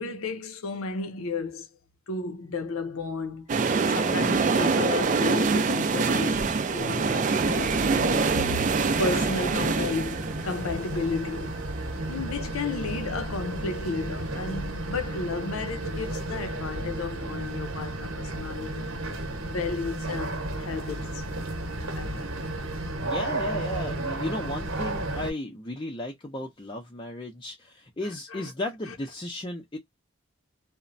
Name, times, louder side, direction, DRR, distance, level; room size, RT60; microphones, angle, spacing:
voice 1, 0.0-1.7 2.1-8.7 9.0-11.5 12.1-18.9 19.4-21.2 22.0-22.3 28.0-28.5 28.9-29.0, left 4 dB, 85° left, 0.6 m, -33 dB
sound 1, 3.5-13.3 13.6-13.7, right 4 dB, 35° right, 0.3 m, -26 dB
sound 2, 7.4-25.3, right 1 dB, 70° right, 0.9 m, -33 dB
voice 2, 23.0-29.8, left 1 dB, 25° left, 0.5 m, -35 dB
3.0 x 2.1 x 2.5 m
head